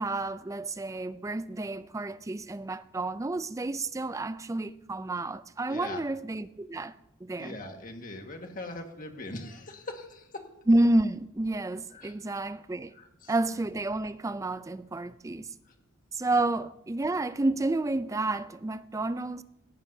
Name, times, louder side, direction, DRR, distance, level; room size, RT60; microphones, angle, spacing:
voice 1, 0.0-6.9 7.2-7.6 10.7-12.9 13.3-15.5 16.1-19.4, right 2 dB, 15° right, 0.4 m, -30 dB
voice 2, 5.7-6.0 7.4-10.4 11.9-12.1 13.0-13.3, left 2 dB, 40° left, 1.6 m, -41 dB
18.0 x 15.5 x 2.7 m
head